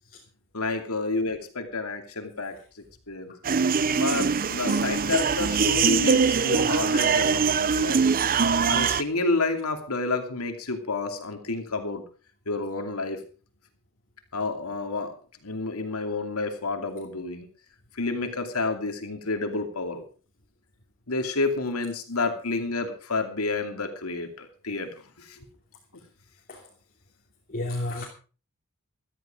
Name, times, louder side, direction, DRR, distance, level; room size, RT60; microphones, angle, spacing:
voice 1, 0.5-2.6 3.1-3.4 3.9-8.0 8.7-12.0 12.5-13.2 14.3-15.1 15.4-17.5 17.9-20.1 21.1-24.9 25.2-25.5, left 3 dB, 85° left, 2.7 m, -29 dB
Music in room playing through Radio., 3.4-9.0, right 5 dB, 40° right, 0.6 m, -23 dB
voice 2, 3.8-4.2 4.7-4.8 26.5-26.7 27.5-28.0, left 1 dB, 40° left, 3.0 m, -33 dB
15.0 x 13.5 x 4.9 m
head